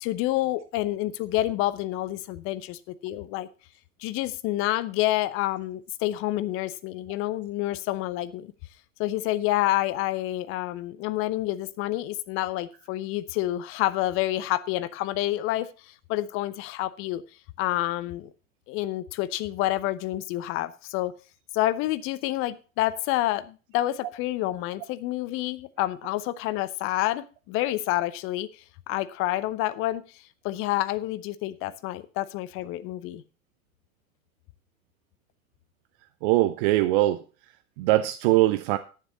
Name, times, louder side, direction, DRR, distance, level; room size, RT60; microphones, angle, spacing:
voice 1, 0.0-3.5 4.0-8.5 9.0-17.2 17.6-18.3 18.7-21.1 21.5-33.2, left 15 dB, 30° left, 15 dB, 0.8 m, -28 dB
voice 2, 36.2-37.2 37.8-38.8, right 16 dB, 40° right, 12 dB, 0.6 m, -21 dB
11.0 x 9.9 x 4.0 m, 0.35 s
figure-of-eight pair, 90°, 42 cm